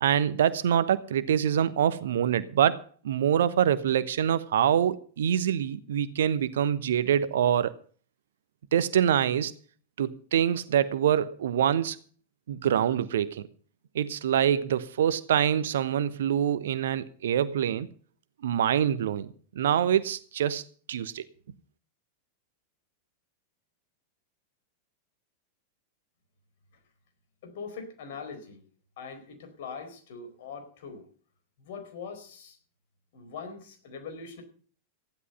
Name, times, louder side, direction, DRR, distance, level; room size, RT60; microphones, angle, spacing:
voice 1, 0.0-7.7 8.7-9.5 10.0-12.0 12.5-13.4 13.9-17.9 18.4-19.3 19.5-20.6 20.9-21.2, right 9 dB, 60° right, 1.0 m, -25 dB
voice 2, 27.4-28.6 29.0-31.0 31.6-32.6 33.1-34.4, left 5 dB, 55° left, 4.4 m, -42 dB
15.0 x 11.0 x 5.6 m
figure-of-eight pair, 90°, 0 cm